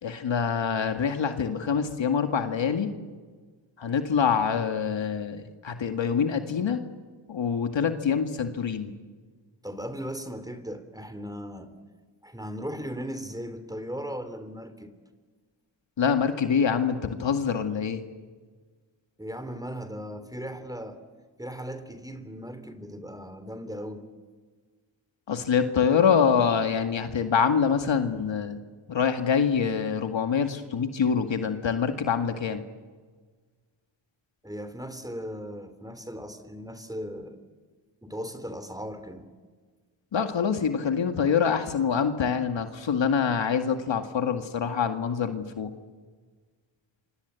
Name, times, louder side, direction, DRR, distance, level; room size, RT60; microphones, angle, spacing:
voice 1, 0.0-2.9 3.8-6.8 7.3-8.9 16.0-18.0 25.3-28.6 28.9-32.6 40.1-45.7, left 6 dB, 65° left, 6 dB, 2.0 m, -25 dB
voice 2, 9.6-11.7 12.2-14.9 19.2-21.0 21.4-24.1 34.4-37.4 38.0-39.3, equal, 10° right, 10 dB, 3.5 m, -37 dB
27.0 x 25.5 x 8.3 m, 1.5 s
cardioid pair, 60°, 49 cm